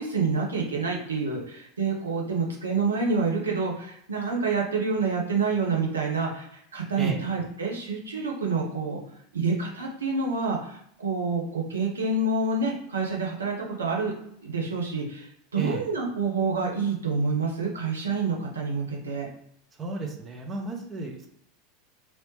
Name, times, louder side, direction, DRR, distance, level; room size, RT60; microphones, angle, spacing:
voice 1, 0.0-9.0 9.3-14.1 14.4-19.3, right 4 dB, 80° right, -1 dB, 0.8 m, -28 dB
voice 2, 19.8-21.3, right 3 dB, 25° right, 1 dB, 0.8 m, -33 dB
3.0 x 2.9 x 3.2 m, 0.71 s
figure-of-eight pair, 85°, 0 cm